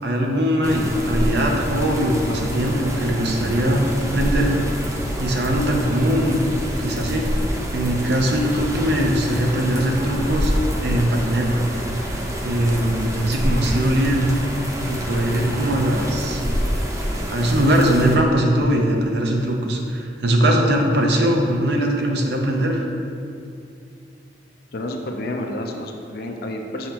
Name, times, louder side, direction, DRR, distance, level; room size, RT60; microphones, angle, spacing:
voice 1, 0.0-4.5 5.2-6.4 6.8-7.5 7.7-10.5 10.8-11.7 12.4-14.3 14.9-16.4 17.3-22.8, right 1 dB, 65° right, 1 dB, 0.7 m, -21 dB
sound 1, 0.6-18.2, equal, 15° right, 0.6 m, -27 dB
voice 2, 24.7-26.9, left 1 dB, 55° left, 3 dB, 0.5 m, -29 dB
6.2 x 5.7 x 2.9 m, 2.4 s
head